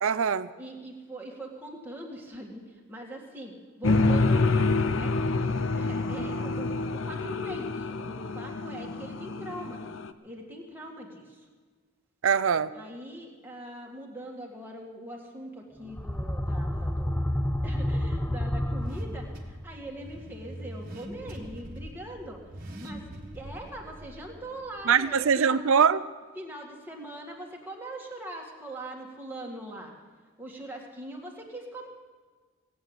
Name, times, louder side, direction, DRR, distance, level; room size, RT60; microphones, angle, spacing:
voice 1, 0.0-0.5 12.2-12.7 24.9-26.0, right 6 dB, 70° right, 16 dB, 0.5 m, -22 dB
voice 2, 0.6-5.2 5.7-9.8 10.2-11.5 12.7-17.3 17.6-22.4 22.8-23.1 23.3-25.6 26.4-29.9 30.4-31.9, right 1 dB, 10° right, -1 dB, 1.8 m, -42 dB
sound 1, 3.8-10.1, left 3 dB, 65° left, 0.6 m, -27 dB
sound 2, 15.8-19.6, left 1 dB, 10° left, 0.6 m, -29 dB
Car / Accelerating revving vroom, 16.1-25.3, right 1 dB, 40° right, 1.5 m, -45 dB
18.0 x 8.5 x 7.8 m, 1.5 s
head